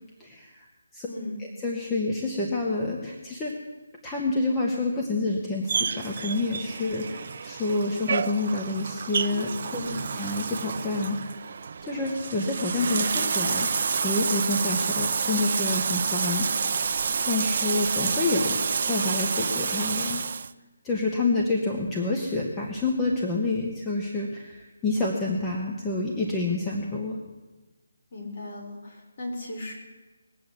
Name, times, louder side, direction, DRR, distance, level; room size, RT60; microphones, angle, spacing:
voice 1, 0.2-0.7 0.9-1.1 1.6-3.5 4.0-9.8 10.2-11.4 11.8-16.6 17.2-20.2 20.8-27.2, left 2 dB, 10° left, -2 dB, 1.2 m, -28 dB
voice 2, 1.1-1.4 9.8-10.1 28.1-29.8, left 2 dB, 40° left, -1 dB, 4.7 m, -36 dB
Bathtub (filling or washing), 5.7-20.5, right 5 dB, 40° right, 0.6 m, -29 dB
20.5 x 7.7 x 8.5 m, 1.2 s
hypercardioid pair, 170°, 0 cm